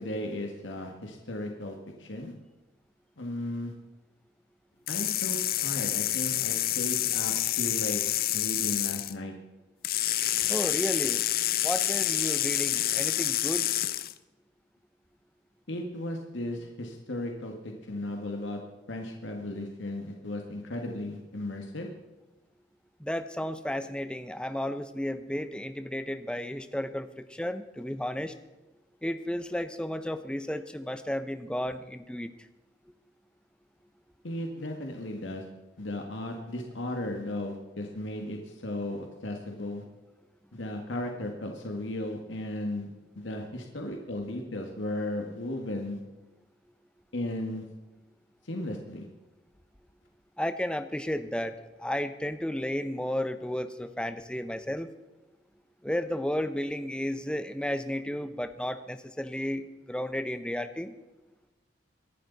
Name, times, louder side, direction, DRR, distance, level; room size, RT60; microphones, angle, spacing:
voice 1, 0.0-2.3 3.2-3.7 4.9-5.4 5.6-8.0 8.3-9.3 10.2-10.6 13.1-13.2 15.7-18.6 18.9-21.9 34.2-35.4 35.8-39.8 40.5-46.0 47.1-47.6 48.4-49.1, left 1 dB, 85° left, 2 dB, 1.9 m, -35 dB
sound 1, 4.9-9.1 9.8-14.1, left 14 dB, 50° left, 0.6 m, -28 dB
voice 2, 10.5-11.2 11.6-13.7 23.0-28.3 29.0-32.3 50.4-54.9 55.8-60.9, left 1 dB, 5° left, 10 dB, 0.7 m, -33 dB
23.5 x 11.5 x 4.1 m, 1.1 s
head